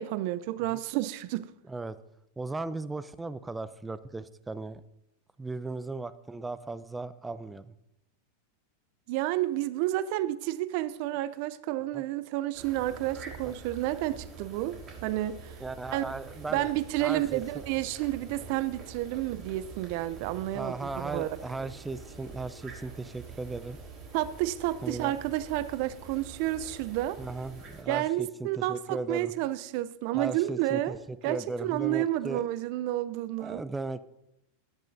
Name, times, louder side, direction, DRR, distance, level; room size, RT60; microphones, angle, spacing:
voice 1, 0.0-1.5 9.1-15.6 15.9-16.0 16.5-21.4 24.1-27.2 27.9-31.0 31.2-33.6, right 15 dB, 55° right, 0.5 m, -30 dB
voice 2, 1.7-2.0 2.4-4.8 5.4-7.7 11.9-12.0 15.6-16.7 17.0-17.4 20.5-23.8 24.8-25.1 27.2-29.3 30.1-31.0 31.3-32.4 33.4-34.0, right 3 dB, 10° right, 0.6 m, -37 dB
sound 1, 12.5-27.8, right 4 dB, 35° right, 3.9 m, -46 dB
19.5 x 10.5 x 2.7 m
hypercardioid pair, 95°, 0 cm